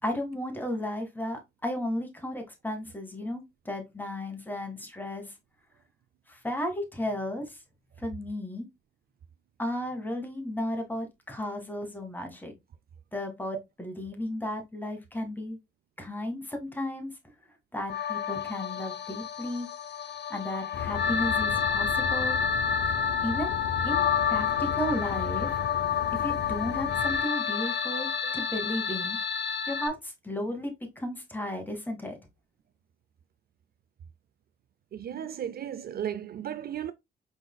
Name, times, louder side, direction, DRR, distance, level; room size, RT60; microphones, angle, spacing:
voice 1, 0.0-5.3 6.3-7.6 8.0-8.7 9.6-12.5 13.1-15.6 16.0-17.1 17.7-19.7 20.3-22.4 23.2-23.5 23.8-25.6 26.1-29.2 29.7-32.2, left 1 dB, 10° left, 1.7 m, -34 dB
sound 1, 17.9-29.9, left 7 dB, 60° left, 1.0 m, -29 dB
sound 2, 20.7-27.2, left 6 dB, 85° left, 0.6 m, -37 dB
voice 2, 34.9-36.9, right 10 dB, 50° right, 0.4 m, -35 dB
4.9 x 4.1 x 2.2 m
cardioid pair, 90°, 20 cm